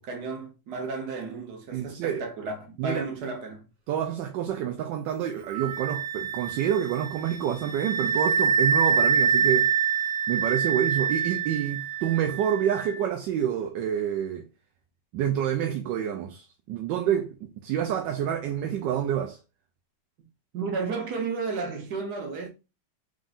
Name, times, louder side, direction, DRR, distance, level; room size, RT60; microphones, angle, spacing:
voice 1, 0.0-3.7 20.5-22.5, right 4 dB, 60° right, 1.5 m, -33 dB
voice 2, 1.7-2.2 2.8-3.0 3.9-9.7 10.3-14.4 15.1-19.4, right 9 dB, 75° right, 1.2 m, -28 dB
Wind instrument woodwind instrument, 5.5-12.9, right 7 dB, 35° right, 1.0 m, -26 dB
3.8 x 3.7 x 2.5 m
omnidirectional pair, 2.1 m